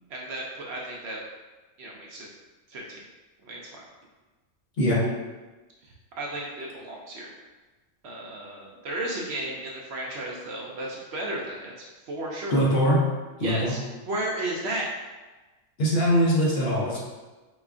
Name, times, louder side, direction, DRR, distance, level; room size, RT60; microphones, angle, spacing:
voice 1, 0.1-1.2 1.8-2.3 2.7-3.0 3.4-3.8 6.2-7.3 8.0-12.7 13.4-13.8 14.1-14.9, right 1 dB, 65° right, -2 dB, 0.8 m, -34 dB
voice 2, 12.5-13.0 13.4-13.7 15.8-17.0, equal, 55° left, -5 dB, 0.9 m, -22 dB
4.8 x 2.3 x 2.4 m, 1.2 s
omnidirectional pair, 1.3 m